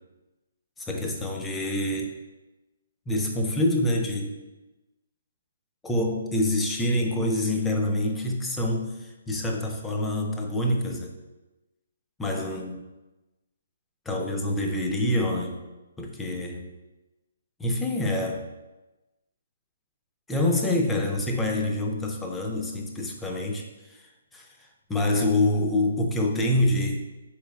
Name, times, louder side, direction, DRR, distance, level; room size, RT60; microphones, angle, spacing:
voice 1, 0.8-2.1 3.1-4.4 5.8-11.2 12.2-12.8 14.1-15.6 16.0-16.7 17.6-18.5 20.3-24.1 24.3-24.5 24.9-27.0, left 1 dB, 10° left, 1 dB, 0.3 m, -26 dB
4.0 x 3.1 x 2.3 m, 1.1 s
hypercardioid pair, 150°, 0 cm